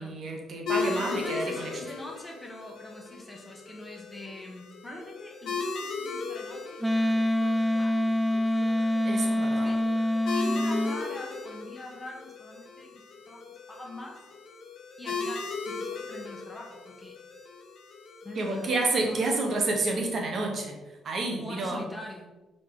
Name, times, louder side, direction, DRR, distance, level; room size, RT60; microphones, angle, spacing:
voice 1, 0.0-1.7 9.0-9.7 18.3-20.8 21.0-21.8, right 2 dB, 55° right, 1 dB, 1.3 m, -29 dB
sound 1, 0.7-19.8, left 4 dB, 65° left, 1.0 m, -38 dB
voice 2, 0.8-8.0 8.7-8.8 9.5-9.8 10.3-14.2 15.0-17.2 18.2-19.3 21.4-22.3, left 1 dB, 10° left, 0 dB, 1.3 m, -44 dB
Wind instrument woodwind instrument, 6.8-11.0, left 1 dB, 5° right, 0.4 m, -25 dB
6.3 x 3.9 x 3.9 m, 1.1 s
cardioid pair, 90°, 0 cm